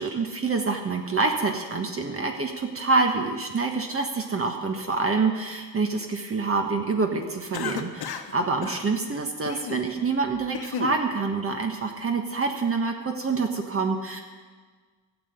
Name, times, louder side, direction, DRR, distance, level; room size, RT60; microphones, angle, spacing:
voice 1, 0.0-14.2, right 4 dB, 35° right, 3 dB, 1.3 m, -26 dB
Cough, 7.5-8.3 8.6-8.8 9.4-9.9 10.3-11.0, left 8 dB, 85° left, 1.0 m, -33 dB
13.0 x 7.2 x 8.0 m, 1.5 s
cardioid pair, 90°, 36 cm